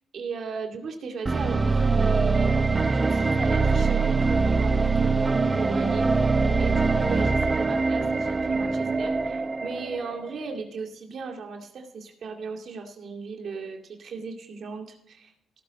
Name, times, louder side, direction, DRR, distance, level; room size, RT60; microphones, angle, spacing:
voice 1, 0.1-15.3, right 4 dB, 60° right, 3 dB, 2.2 m, -37 dB
sound 1, 1.3-10.3, right 4 dB, 25° right, 0.7 m, -23 dB
17.0 x 7.6 x 4.1 m, 0.80 s
cardioid pair, 90°, 0 cm